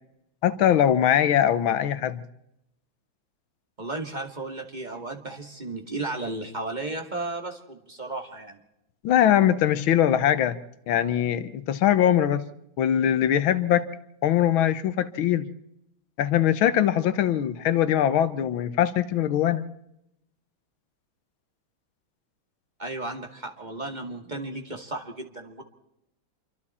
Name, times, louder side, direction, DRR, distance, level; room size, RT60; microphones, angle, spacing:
voice 1, 0.4-2.2 9.0-10.6 10.9-12.4 12.8-13.8 14.2-15.5 16.2-19.6, left 10 dB, 85° left, 14 dB, 1.7 m, -22 dB
voice 2, 3.8-8.6 22.8-25.6, right 2 dB, 20° right, 3 dB, 2.0 m, -34 dB
26.5 x 24.5 x 4.3 m, 0.83 s
omnidirectional pair, 2.2 m